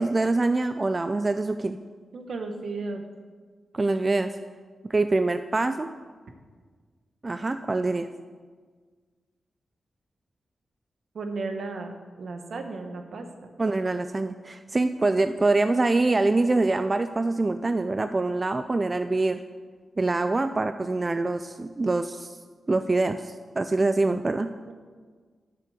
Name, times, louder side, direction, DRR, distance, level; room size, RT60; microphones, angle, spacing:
voice 1, 0.0-1.8 3.7-4.3 4.9-5.9 7.2-8.1 13.6-19.4 20.0-22.4 22.7-24.5, right 2 dB, 30° right, 9 dB, 0.3 m, -25 dB
voice 2, 2.1-3.0 11.1-11.9 12.2-13.5 24.7-24.8, right 3 dB, 65° right, 5 dB, 1.1 m, -34 dB
8.3 x 6.7 x 6.9 m, 1.5 s
wide cardioid pair, 105°, 0 cm